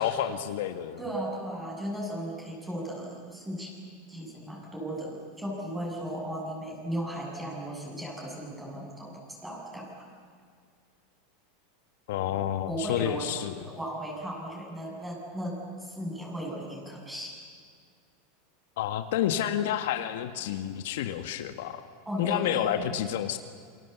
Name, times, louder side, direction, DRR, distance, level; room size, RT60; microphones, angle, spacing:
voice 1, 0.0-1.0 12.1-13.6 18.8-21.8 22.2-23.4, left 11 dB, 75° left, 8 dB, 1.7 m, -29 dB
voice 2, 1.0-3.7 4.1-10.1 12.7-13.3 13.6-17.3 22.1-22.8, right 1 dB, 10° right, -1 dB, 7.7 m, -36 dB
28.0 x 25.0 x 8.2 m, 2.1 s
supercardioid pair, 135°, 0 cm